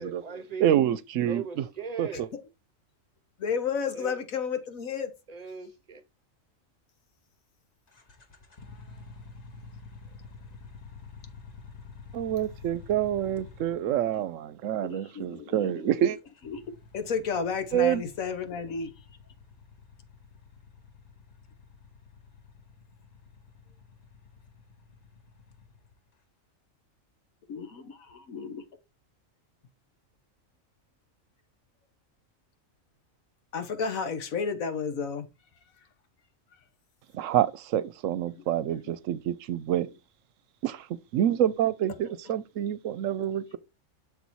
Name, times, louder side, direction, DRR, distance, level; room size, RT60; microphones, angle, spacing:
voice 1, 0.0-0.7 1.3-2.3 4.0-4.1 5.3-6.0, right 6 dB, 35° right, 0.8 m, -38 dB
voice 2, 0.6-1.7 2.0-2.3 12.1-16.2 17.7-18.0 37.1-39.9 40.6-40.9 41.1-43.6, right 11 dB, 75° right, 1.0 m, -27 dB
voice 3, 3.4-5.1 14.9-15.9 16.4-16.6 16.9-19.1 27.5-28.6 33.5-35.3 35.8-35.9 36.5-36.6 38.3-38.4 38.8-38.9, left 6 dB, 90° left, 1.5 m, -32 dB
sound 1, 7.9-14.3 16.0-26.1, left 5 dB, 35° left, 0.9 m, -49 dB
6.7 x 4.1 x 4.4 m
omnidirectional pair, 1.4 m